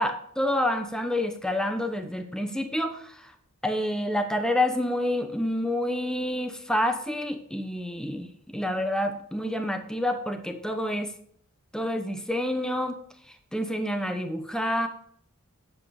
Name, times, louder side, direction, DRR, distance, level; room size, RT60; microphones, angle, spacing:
voice 1, 0.0-3.3 3.6-11.1 11.7-13.0 13.5-14.9, left 1 dB, 5° left, 6 dB, 1.0 m, -28 dB
10.5 x 7.7 x 5.0 m, 0.62 s
head